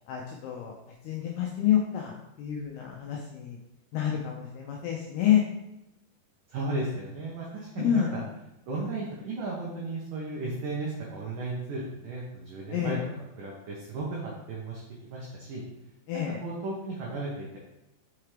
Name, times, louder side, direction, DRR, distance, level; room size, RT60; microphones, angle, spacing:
voice 1, 0.1-0.8 1.0-3.6 3.9-5.4 7.8-8.3 12.7-13.0 16.1-16.4, left 10 dB, 85° left, 0 dB, 2.3 m, -28 dB
voice 2, 6.5-8.2 8.7-13.0 13.4-14.8 15.1-15.6 16.4-17.6, right 2 dB, 90° right, -3 dB, 1.8 m, -35 dB
6.0 x 5.7 x 3.3 m, 0.92 s
omnidirectional pair, 5.4 m